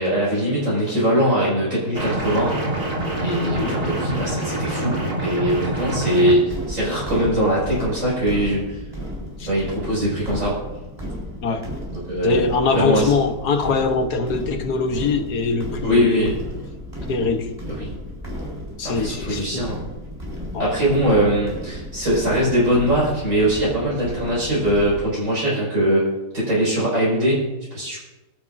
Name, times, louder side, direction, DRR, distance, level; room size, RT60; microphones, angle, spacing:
voice 1, 0.0-2.5 3.2-8.8 9.2-10.6 11.9-12.4 12.7-13.1 15.8-16.3 17.8-17.9 18.8-19.8 20.6-26.1 26.3-27.4 27.7-28.0, equal, 50° right, 6.1 m, -21 dB
sound 1, 2.0-6.3, right 2 dB, 70° right, 4.0 m, -25 dB
sound 2, 6.5-25.1, equal, 15° right, 4.2 m, -34 dB
voice 2, 12.2-16.3 17.1-17.6 18.8-19.7 20.5-20.8, left 4 dB, 85° left, 1.8 m, -23 dB
24.0 x 12.0 x 2.7 m
omnidirectional pair, 1.7 m